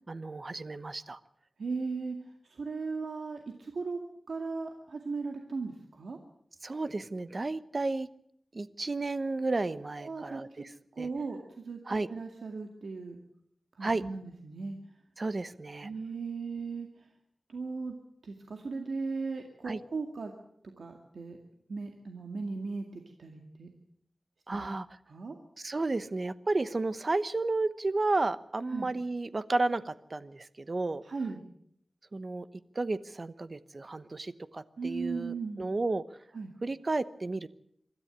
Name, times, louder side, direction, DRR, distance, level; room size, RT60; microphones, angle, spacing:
voice 1, 0.1-1.2 6.6-8.1 8.5-11.1 11.8-12.1 13.8-14.0 15.2-15.9 19.6-19.8 24.5-24.9 25.6-31.0 32.1-32.5 32.7-36.0 36.6-37.5, right 3 dB, 45° right, 14 dB, 0.9 m, -32 dB
voice 2, 1.6-2.2 2.5-4.0 4.3-6.2 10.0-10.6 11.0-13.2 13.8-14.8 15.8-16.9 17.5-17.9 18.2-20.3 20.8-21.4 21.7-23.7 24.5-24.7 25.1-25.4 28.7-28.9 31.0-31.4 34.8-35.7 36.3-36.5, right 4 dB, 90° right, 3 dB, 2.1 m, -37 dB
25.0 x 13.5 x 8.1 m, 0.70 s
wide cardioid pair, 95°, 0 cm